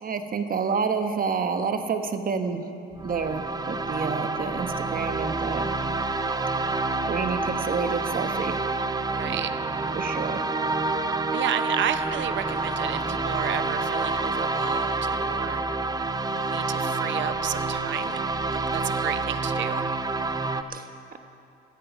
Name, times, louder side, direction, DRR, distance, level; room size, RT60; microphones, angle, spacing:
voice 1, 0.0-2.6 3.0-5.7 7.0-8.6 9.9-10.4 20.7-20.9, right 5 dB, 45° right, 7 dB, 1.2 m, -29 dB
sound 1, 2.9-20.6, right 3 dB, 20° right, 0.7 m, -28 dB
voice 2, 9.1-9.5 11.3-15.6 16.3-18.2 18.5-20.0, right 10 dB, 70° right, 11 dB, 0.8 m, -32 dB
16.5 x 14.5 x 5.3 m, 2.7 s
cardioid pair, 90°, 20 cm